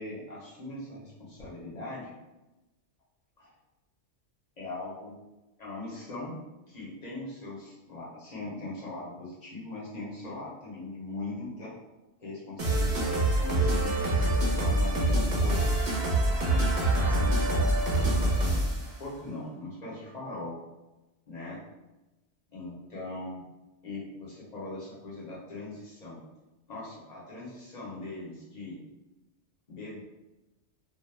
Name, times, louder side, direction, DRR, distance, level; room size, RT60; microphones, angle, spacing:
voice 1, 0.0-2.1 3.4-3.5 4.6-5.2 5.6-6.4 6.7-11.7 12.2-15.6 16.4-18.6 19.0-20.6 21.3-21.6 22.5-23.4 23.8-26.2 26.7-28.8 29.7-30.0, left 2 dB, 45° left, -6 dB, 0.7 m, -40 dB
sound 1, 12.6-18.9, right 1 dB, 50° right, 0.7 m, -25 dB
2.2 x 2.0 x 3.0 m, 1.0 s
omnidirectional pair, 1.2 m